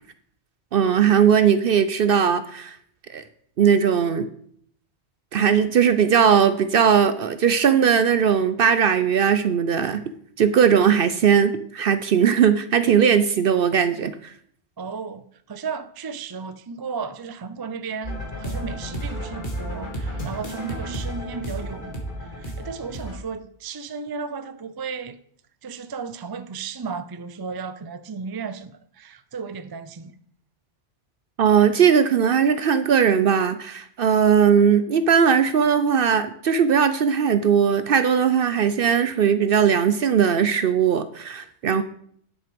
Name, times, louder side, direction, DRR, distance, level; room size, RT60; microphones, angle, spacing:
voice 1, 0.7-2.8 3.1-3.2 3.6-4.3 5.3-10.0 10.4-14.3 31.4-41.8, right 7 dB, 60° right, 0.7 m, -19 dB
voice 2, 14.8-25.2 25.6-30.1, right 5 dB, 35° right, 0.4 m, -34 dB
sound 1, 18.0-23.2, equal, 45° left, 2.1 m, -32 dB
10.5 x 6.5 x 5.1 m
omnidirectional pair, 1.2 m